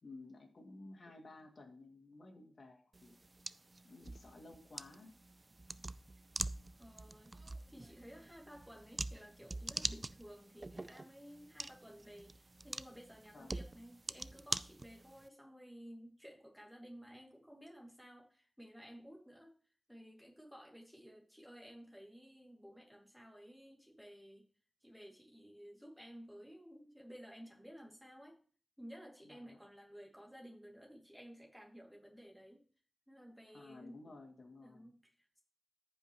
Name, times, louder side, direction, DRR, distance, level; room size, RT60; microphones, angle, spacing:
voice 1, 0.0-3.2 3.8-5.1 13.3-13.6 29.2-29.6 33.5-34.9, left 2 dB, 50° left, 1 dB, 2.3 m, -55 dB
sound 1, 2.9-15.3, right 2 dB, 25° right, 0.3 m, -45 dB
voice 2, 6.8-7.4 7.7-19.5 19.9-24.5 24.8-28.4 28.8-32.7 33.1-34.0 34.6-35.4, equal, ahead, -1 dB, 2.4 m, -55 dB
14.0 x 5.4 x 3.0 m, 0.41 s
wide cardioid pair, 95°, 0 cm